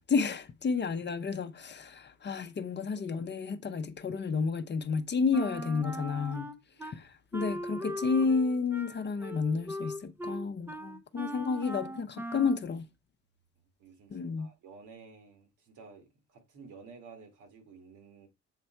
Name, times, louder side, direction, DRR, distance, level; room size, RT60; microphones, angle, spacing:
voice 1, 0.1-6.5 6.8-12.9 14.1-14.5, left 5 dB, 35° left, 0.7 m, -31 dB
Wind instrument woodwind instrument, 5.3-7.0 7.3-12.7, equal, 5° right, 0.6 m, -39 dB
voice 2, 13.8-18.3, right 5 dB, 80° right, 2.0 m, -53 dB
7.4 x 3.3 x 4.4 m
cardioid pair, 90°, 30 cm